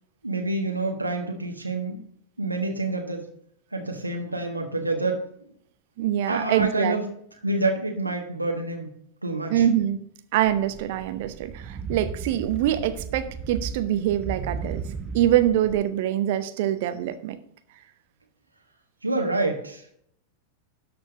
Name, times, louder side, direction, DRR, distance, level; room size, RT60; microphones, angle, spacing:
voice 1, 0.2-2.0 2.4-3.2 3.7-5.2 6.2-7.0 7.4-8.9 9.2-9.6 19.0-19.9, right 2 dB, 85° right, 1 dB, 1.3 m, -27 dB
voice 2, 6.0-7.0 9.5-10.0 10.3-14.8 15.1-17.4, right 11 dB, 55° right, 10 dB, 0.9 m, -24 dB
sound 1, 10.5-15.8, right 5 dB, 30° right, 0.8 m, -35 dB
12.5 x 4.4 x 6.4 m, 0.68 s
figure-of-eight pair, 90°, 0 cm